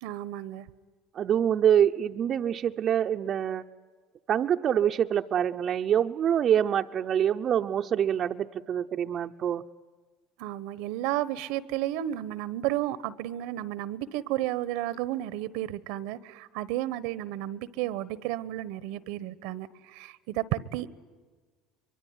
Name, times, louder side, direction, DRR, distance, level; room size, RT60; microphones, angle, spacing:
voice 1, 0.0-0.7 10.4-20.9, right 14 dB, 80° right, 19 dB, 1.1 m, -32 dB
voice 2, 1.1-3.6 4.3-9.6, right 9 dB, 45° right, 5 dB, 0.7 m, -25 dB
24.0 x 23.5 x 9.7 m, 1.4 s
supercardioid pair, 100°, 0 cm